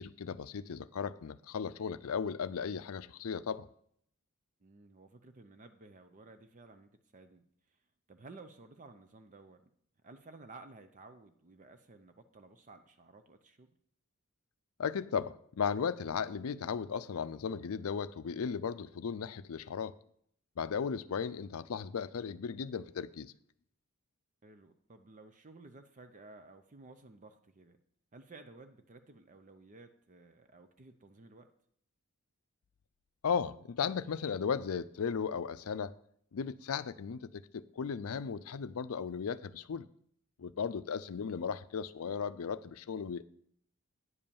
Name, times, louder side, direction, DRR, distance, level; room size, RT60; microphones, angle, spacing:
voice 1, 0.0-3.7 14.8-19.9 20.6-23.3 33.2-35.9 36.3-37.3 37.5-39.9 40.4-43.2, left 6 dB, 75° left, 0.4 m, -36 dB
voice 2, 4.6-7.8 8.1-9.6 10.0-13.7 24.4-27.8 28.1-31.5, right 3 dB, 35° right, 0.6 m, -55 dB
9.7 x 5.4 x 7.0 m
head